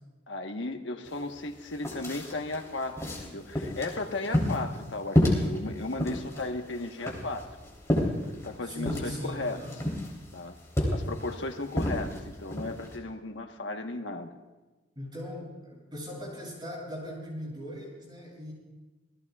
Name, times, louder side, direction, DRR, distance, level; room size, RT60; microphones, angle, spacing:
voice 1, 0.3-7.5 8.2-9.6 10.3-10.6 10.9-14.3, left 2 dB, 70° left, 4 dB, 1.3 m, -35 dB
sound 1, 1.1-1.2 1.5-13.0, left 1 dB, 15° left, 3.4 m, -31 dB
voice 2, 8.6-9.8 15.0-18.5, left 1 dB, 25° right, -3 dB, 7.3 m, -39 dB
28.0 x 19.0 x 2.4 m, 1.2 s
head